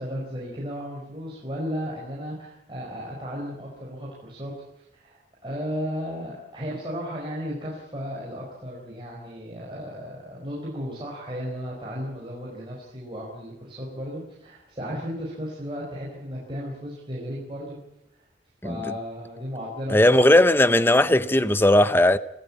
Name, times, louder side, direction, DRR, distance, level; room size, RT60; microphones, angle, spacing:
voice 1, 0.0-17.8 18.6-20.3, equal, 25° right, 4.6 m, -34 dB
voice 2, 19.9-22.2, left 1 dB, 10° left, 0.8 m, -17 dB
25.5 x 15.5 x 8.6 m
head